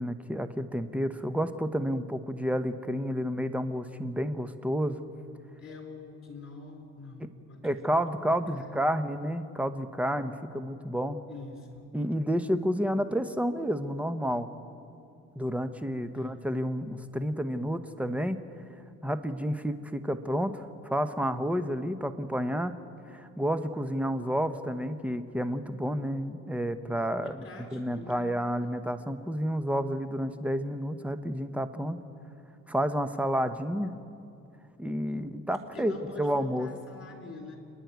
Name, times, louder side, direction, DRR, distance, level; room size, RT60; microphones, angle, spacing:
voice 1, 0.0-5.0 7.2-7.3 7.6-11.2 11.9-14.5 15.3-18.4 19.0-22.7 23.1-27.4 27.7-32.0 32.7-33.9 34.8-35.9 36.2-36.7, equal, 5° right, 10 dB, 1.1 m, -30 dB
voice 2, 5.6-8.0 8.3-8.9 11.3-11.9 16.1-16.4 27.2-28.3 28.6-28.7 35.6-37.6, left 3 dB, 45° left, 4 dB, 4.2 m, -46 dB
28.5 x 11.0 x 9.5 m, 2.6 s
cardioid pair, 90°, 30 cm